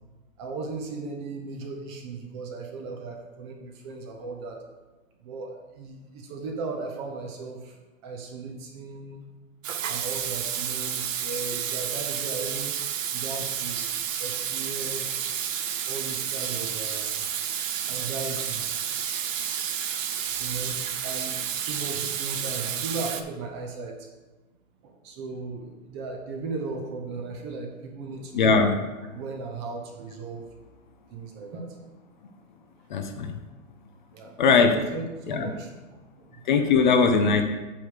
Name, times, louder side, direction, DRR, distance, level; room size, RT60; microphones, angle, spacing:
voice 1, 0.4-4.6 5.2-7.8 8.0-9.2 9.9-12.7 13.1-13.9 14.2-15.2 15.8-17.3 17.8-18.6 20.4-24.1 24.8-28.7 29.1-30.5 31.1-31.8 33.1-33.2 34.1-34.3 34.7-36.4 36.9-37.0, right 3 dB, 20° right, 2 dB, 0.6 m, -37 dB
Water tap faucet / Sink (filling or washing), 9.6-23.2, right 9 dB, 65° right, 0.8 m, -30 dB
voice 2, 28.3-28.8 32.9-33.4 34.4-34.8 35.3-35.5 36.5-37.4, left 5 dB, 35° left, 6 dB, 0.5 m, -20 dB
8.6 x 3.2 x 6.3 m, 1.2 s
hypercardioid pair, 150°, 41 cm